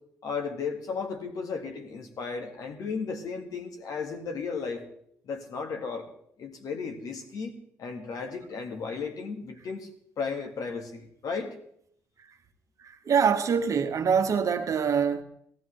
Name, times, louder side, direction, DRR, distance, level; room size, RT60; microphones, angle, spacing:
voice 1, 0.2-4.8 5.2-6.1 6.4-9.9 10.2-11.6, left 5 dB, 60° left, 1.8 m, -34 dB
voice 2, 12.8-15.2, right 6 dB, 50° right, 1.2 m, -24 dB
17.0 x 14.0 x 3.3 m
hypercardioid pair, 50°, 7 cm